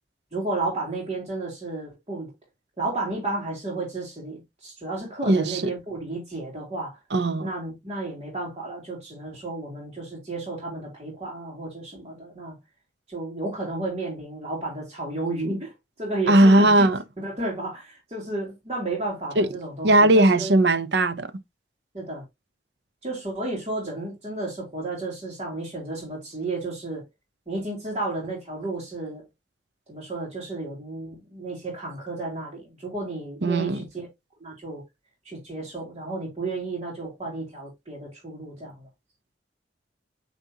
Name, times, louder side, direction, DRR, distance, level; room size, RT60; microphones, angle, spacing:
voice 1, 0.3-2.3 2.8-7.0 7.4-12.5 13.1-16.9 17.2-20.5 21.9-22.2 23.0-27.0 27.5-29.2 29.9-34.1 34.4-34.8 35.2-38.7, right 2 dB, 35° right, 3.2 m, -32 dB
voice 2, 5.3-5.6 7.1-7.5 16.3-17.0 19.4-19.5 19.8-21.3 33.4-33.8, right 1 dB, 65° right, 0.8 m, -18 dB
9.1 x 4.4 x 2.8 m
head